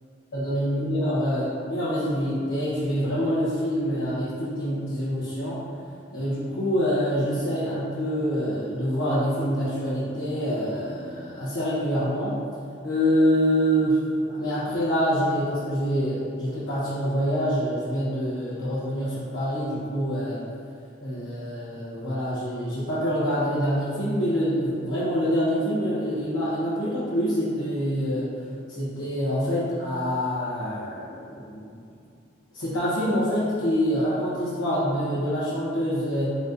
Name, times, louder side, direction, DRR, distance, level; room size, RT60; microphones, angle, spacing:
voice 1, 0.3-5.6 6.1-12.4 12.8-20.4 21.0-28.3 28.7-31.7 32.5-36.4, equal, 90° left, -12 dB, 1.0 m, -26 dB
4.1 x 3.9 x 2.6 m, 2.5 s
head